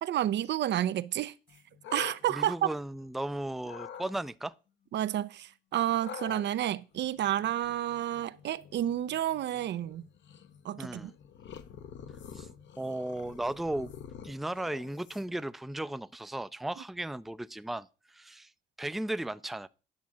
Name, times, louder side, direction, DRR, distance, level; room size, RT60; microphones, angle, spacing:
voice 1, 0.0-1.3 1.9-2.5 4.9-10.0 10.6-11.1, right 12 dB, 65° right, 0.5 m, -30 dB
sound 1, 1.5-3.2 3.6-4.1 6.0-15.5, left 8 dB, 70° left, 1.1 m, -48 dB
voice 2, 2.3-4.5 10.8-11.1 12.3-12.5 12.8-13.9 14.2-18.5 18.8-19.7, right 1 dB, ahead, 0.4 m, -36 dB
10.5 x 3.8 x 7.3 m
cardioid pair, 90°, 20 cm